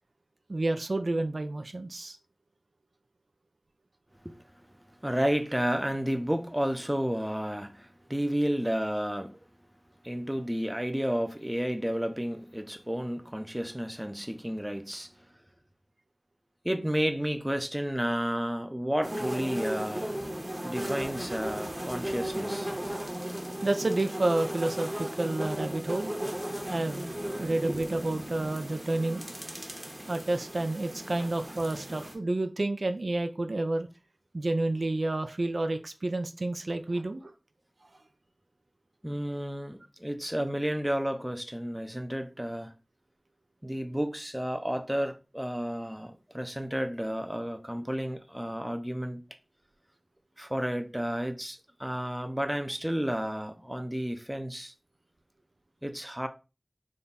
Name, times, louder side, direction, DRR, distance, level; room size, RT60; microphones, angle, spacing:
voice 1, 0.5-2.2 23.6-26.1 26.7-27.1 27.4-29.3 30.1-33.9 34.3-37.3, right 2 dB, 80° right, 0.4 m, -30 dB
voice 2, 5.0-9.4 10.0-15.1 16.6-20.2 20.6-22.7 27.7-27.8 36.9-37.0 39.0-42.7 43.6-49.2 50.4-54.7 55.8-56.3, equal, 10° right, 0.5 m, -31 dB
sound 1, 19.0-32.1, right 1 dB, 30° right, 1.0 m, -36 dB
3.6 x 2.2 x 4.0 m
wide cardioid pair, 55°, 0 cm